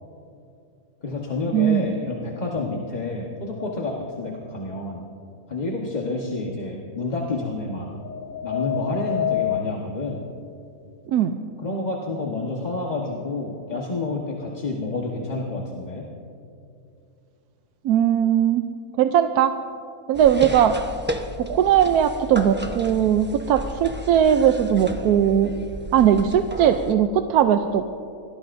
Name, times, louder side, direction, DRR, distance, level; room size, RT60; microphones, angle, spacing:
voice 1, 1.0-5.0 5.5-7.9 8.4-10.2 11.6-16.0, left 2 dB, 30° left, -2 dB, 1.4 m, -29 dB
voice 2, 1.5-1.9 11.1-11.4 17.8-18.6 19.0-19.5 20.1-20.8 21.4-25.5 25.9-27.8, right 9 dB, 85° right, 7 dB, 1.1 m, -19 dB
sound 1, 3.6-4.3 7.6-9.8, left 12 dB, 65° left, 1.0 m, -28 dB
sound 2, 20.1-26.9, equal, 10° right, 0.6 m, -33 dB
25.0 x 18.5 x 2.6 m, 2.6 s
omnidirectional pair, 1.6 m